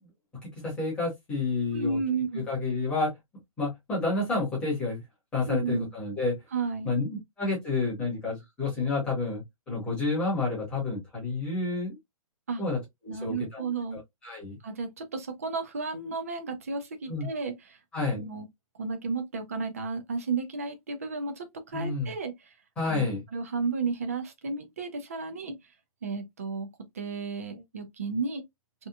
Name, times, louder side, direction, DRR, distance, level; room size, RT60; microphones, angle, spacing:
voice 1, 0.4-2.0 2.5-3.1 3.6-5.0 5.3-6.4 6.8-12.0 12.6-12.8 13.0-13.7 14.2-14.6 17.1-17.3 17.9-18.2 21.7-22.1 22.8-23.2, left 3 dB, 5° left, 0.8 m, -29 dB
voice 2, 1.7-2.5 5.5-5.9 6.5-6.9 12.5-12.6 13.1-14.0 14.6-17.8 18.2-18.5 18.8-22.5 22.9-25.6 26.0-26.7 26.9-28.4, right 4 dB, 25° right, 0.3 m, -33 dB
2.8 x 2.1 x 2.2 m
hypercardioid pair, 170°, 19 cm